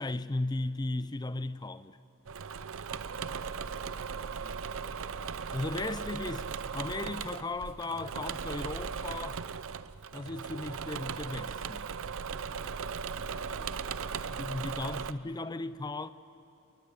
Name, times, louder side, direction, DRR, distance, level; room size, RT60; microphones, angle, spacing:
voice 1, 0.0-2.0 5.5-9.4 10.1-11.9 14.3-16.1, left 2 dB, 20° left, 0.5 m, -36 dB
Engine / Mechanisms, 2.2-15.1, right 6 dB, 65° right, 0.7 m, -38 dB
voice 2, 2.8-5.3 12.4-14.4, right 1 dB, 45° right, 3.8 m, -54 dB
29.0 x 22.0 x 8.5 m
head